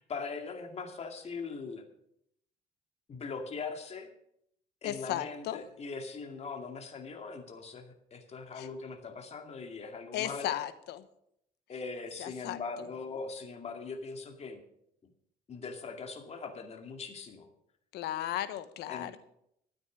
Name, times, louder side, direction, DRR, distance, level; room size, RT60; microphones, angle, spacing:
voice 1, 0.0-1.8 3.1-4.1 4.8-10.6 11.7-14.6 15.5-17.5 18.9-19.2, left 4 dB, 40° left, 4 dB, 2.3 m, -41 dB
voice 2, 4.8-5.6 8.5-8.7 10.1-11.0 12.2-12.6 17.9-19.2, left 12 dB, 80° left, 13 dB, 1.1 m, -35 dB
13.0 x 9.2 x 6.3 m, 0.75 s
cardioid pair, 110°, 17 cm